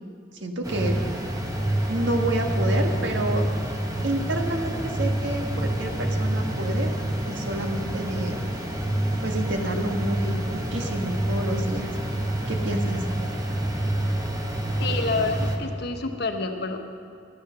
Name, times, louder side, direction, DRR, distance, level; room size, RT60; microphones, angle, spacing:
voice 1, 0.3-1.0 1.9-3.5 4.0-6.9 7.3-8.4 9.2-11.9 12.5-13.0, right 1 dB, 85° right, 3 dB, 1.5 m, -29 dB
sound 1, 0.6-15.6, right 1 dB, 20° right, 1.2 m, -27 dB
voice 2, 14.8-16.8, left 3 dB, 65° left, 5 dB, 1.1 m, -28 dB
13.5 x 10.0 x 6.8 m, 2.3 s
head